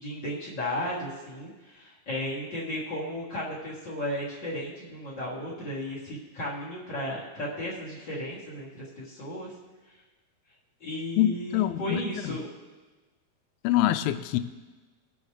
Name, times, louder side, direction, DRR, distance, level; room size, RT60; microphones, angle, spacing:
voice 1, 0.0-9.5 10.8-12.5, left 1 dB, 45° left, -7 dB, 1.6 m, -34 dB
voice 2, 11.2-12.3 13.6-14.4, left 13 dB, 85° left, 10 dB, 2.4 m, -25 dB
20.5 x 7.1 x 3.2 m, 1.3 s
omnidirectional pair, 4.5 m